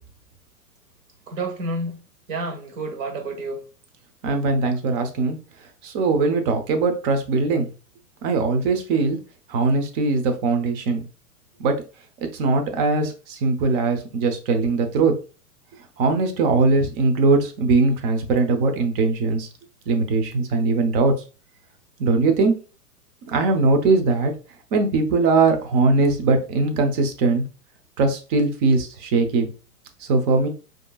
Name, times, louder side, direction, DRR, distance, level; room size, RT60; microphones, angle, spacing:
voice 1, 1.3-2.0 2.3-3.6, right 2 dB, 55° right, 4 dB, 1.4 m, -29 dB
voice 2, 4.2-5.4 5.8-7.7 8.2-9.2 9.5-11.0 11.6-11.8 12.2-15.1 16.0-19.5 19.9-21.1 22.0-22.6 23.3-24.3 24.7-27.4 28.0-29.5 30.1-30.5, right 3 dB, 35° right, 6 dB, 0.8 m, -20 dB
5.0 x 3.0 x 2.3 m, 0.34 s
hypercardioid pair, 120°, 46 cm